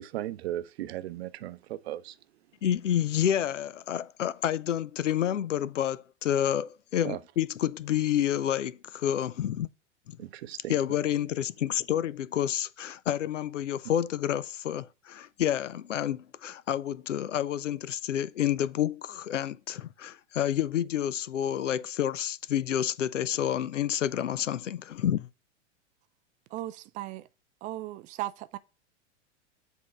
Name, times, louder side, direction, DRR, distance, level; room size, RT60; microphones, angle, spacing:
voice 1, 0.0-2.1 7.0-7.2 10.2-10.7, right 13 dB, 60° right, 0.7 m, -36 dB
voice 2, 2.6-9.7 10.1-10.2 10.7-25.3, left 10 dB, 80° left, 0.6 m, -29 dB
voice 3, 26.5-27.3 27.6-28.6, right 15 dB, 25° right, 0.3 m, -37 dB
7.9 x 3.6 x 5.8 m
figure-of-eight pair, 95°, 36 cm